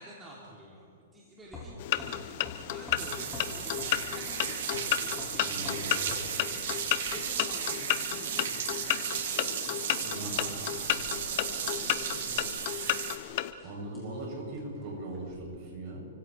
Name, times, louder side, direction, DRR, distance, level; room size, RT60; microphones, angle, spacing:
voice 1, 0.0-12.8, right 1 dB, 10° right, -5 dB, 3.2 m, -49 dB
sound 1, 1.4-15.4, left 2 dB, 10° left, 5.9 m, -49 dB
sound 2, 1.8-13.5, left 14 dB, 40° left, 1.0 m, -33 dB
sound 3, 3.0-13.2, right 8 dB, 55° right, 3.1 m, -35 dB
voice 2, 5.5-5.8 10.0-10.4 13.6-16.1, right 2 dB, 35° right, -2 dB, 7.9 m, -39 dB
30.0 x 25.0 x 4.7 m, 2.4 s
hypercardioid pair, 160°, 0 cm